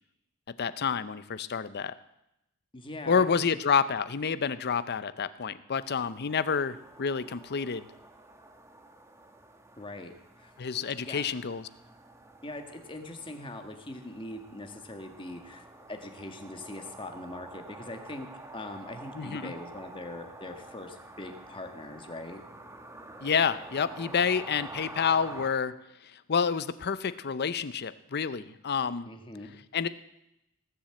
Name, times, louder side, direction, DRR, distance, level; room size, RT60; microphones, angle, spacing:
voice 1, 0.6-1.9 3.1-7.9 10.6-11.7 19.2-19.5 23.2-25.7 26.0-29.1 29.7-29.9, left 6 dB, 50° left, 15 dB, 0.6 m, -29 dB
voice 2, 2.7-3.2 9.8-10.5 11.0-11.2 12.4-18.3 18.5-22.4 29.1-29.5, left 2 dB, 25° left, 5 dB, 1.6 m, -42 dB
sound 1, 5.8-25.5, right 2 dB, 15° right, 1.2 m, -48 dB
18.5 x 7.3 x 7.7 m, 0.86 s
head